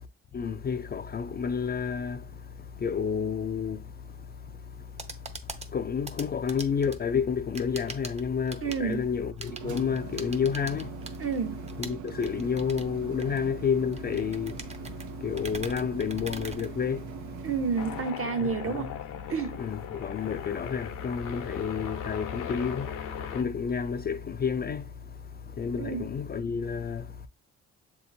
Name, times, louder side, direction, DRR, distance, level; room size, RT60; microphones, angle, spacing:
voice 1, 0.3-11.2 11.8-17.5 18.4-18.8 19.6-27.3, left 6 dB, 35° left, 0.4 m, -31 dB
sound 1, 4.8-17.3, right 3 dB, 20° right, 0.7 m, -44 dB
voice 2, 8.6-9.1 11.2-11.6 17.4-19.0 19.3-19.6 25.8-26.1, right 5 dB, 45° right, 1.0 m, -30 dB
sound 2, 9.2-18.1, right 8 dB, 75° right, 0.6 m, -42 dB
sound 3, 17.8-23.4, left 8 dB, 90° left, 0.8 m, -38 dB
7.2 x 2.7 x 2.6 m
cardioid pair, 90°, 30 cm